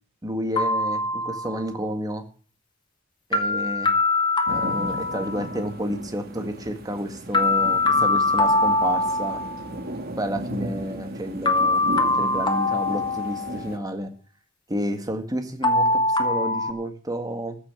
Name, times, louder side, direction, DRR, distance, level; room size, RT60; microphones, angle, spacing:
voice 1, 0.2-2.2 3.3-3.9 4.5-9.4 10.2-11.8 12.1-14.1 14.7-17.6, equal, 20° right, 6 dB, 1.8 m, -30 dB
sound 1, 0.6-1.7 3.3-5.6 7.3-9.7 11.5-13.8 15.6-16.7, left 2 dB, 25° left, 1.4 m, -23 dB
sound 2, 4.5-13.8, right 1 dB, 50° right, 2.0 m, -36 dB
14.0 x 7.1 x 9.0 m, 0.42 s
head